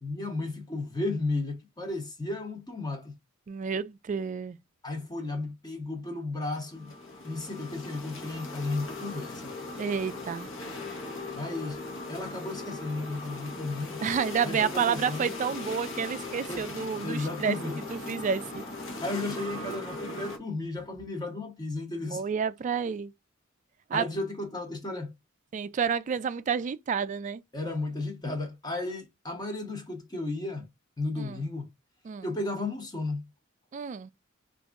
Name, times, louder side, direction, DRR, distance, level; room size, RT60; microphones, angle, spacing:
voice 1, 0.0-3.1 4.8-6.9 7.2-9.5 11.3-11.8 12.1-14.0 14.4-15.3 16.5-16.7 17.0-17.8 19.0-22.2 23.9-25.1 27.5-30.7 31.0-31.7 32.2-33.2, left 2 dB, 20° left, 0.8 m, -34 dB
voice 2, 3.5-4.6 9.8-10.5 14.0-17.6 17.9-18.6 22.1-23.1 23.9-24.1 25.5-27.4 31.2-31.4 32.0-32.3 33.7-34.1, right 6 dB, 40° right, 0.3 m, -30 dB
sound 1, 6.6-20.4, left 2 dB, 65° left, 0.9 m, -39 dB
4.0 x 2.5 x 2.3 m
head